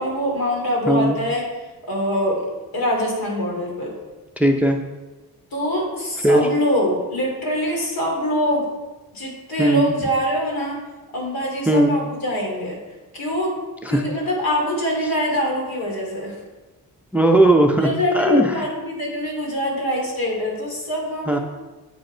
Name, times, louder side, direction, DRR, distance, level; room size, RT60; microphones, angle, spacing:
voice 1, 0.0-1.5 1.9-2.4 2.7-3.9 5.5-8.7 9.1-10.8 11.1-12.8 13.1-13.5 13.9-16.3 17.8-21.4, equal, 70° left, -2 dB, 2.7 m, -24 dB
voice 2, 0.9-1.2 4.4-4.8 6.2-6.5 9.6-9.9 11.7-12.0 13.8-14.0 17.1-17.9 18.1-18.7 21.3-21.4, right 1 dB, 5° right, 4 dB, 0.5 m, -17 dB
8.2 x 5.2 x 4.4 m, 1.2 s
cardioid pair, 90°, 37 cm